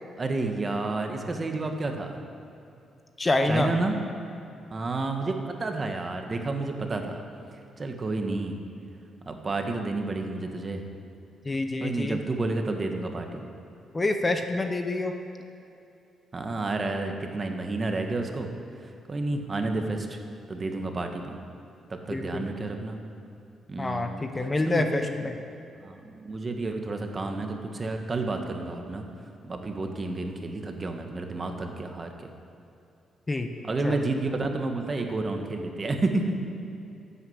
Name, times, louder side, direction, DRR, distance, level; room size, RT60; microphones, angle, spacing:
voice 1, 0.2-2.2 3.5-3.9 4.7-7.2 7.5-8.6 9.2-10.8 11.8-13.5 16.3-18.5 18.8-20.2 20.5-21.4 21.9-23.0 23.7-24.1 24.6-25.1 25.8-29.0 29.4-32.3 33.6-36.3, right 2 dB, 30° right, 4 dB, 1.3 m, -30 dB
voice 2, 3.2-3.7 11.4-12.2 13.9-15.1 22.1-22.5 23.8-25.3 33.3-33.5 33.8-34.0, left 2 dB, 25° left, 6 dB, 0.8 m, -27 dB
12.0 x 8.2 x 7.9 m, 2.6 s
cardioid pair, 105°, 0 cm